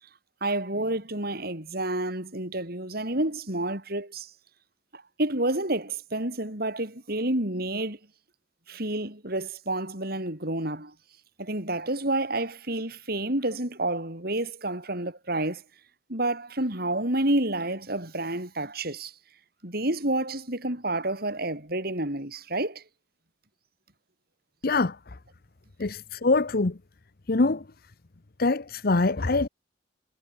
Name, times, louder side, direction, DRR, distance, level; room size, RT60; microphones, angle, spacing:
voice 1, 0.4-4.3 4.9-8.0 8.7-10.9 11.4-15.6 16.1-19.1 19.6-22.8, right 1 dB, 55° right, 7.3 m, -29 dB
voice 2, 24.6-25.0 25.8-26.8 27.3-27.6 28.4-29.5, left 3 dB, 55° left, 0.9 m, -24 dB
head